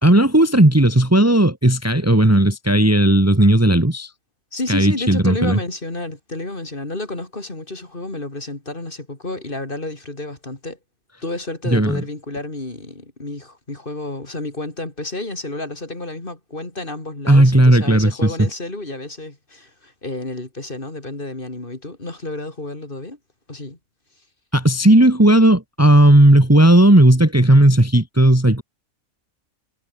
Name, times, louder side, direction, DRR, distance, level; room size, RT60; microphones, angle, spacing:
voice 1, 0.0-4.1 4.7-5.6 11.7-12.0 17.3-18.5 24.5-28.6, right 1 dB, 10° right, 1.7 m, -14 dB
voice 2, 4.5-10.8 11.2-23.2 23.5-23.8, left 2 dB, 40° left, 3.8 m, -30 dB
omnidirectional pair, 1.4 m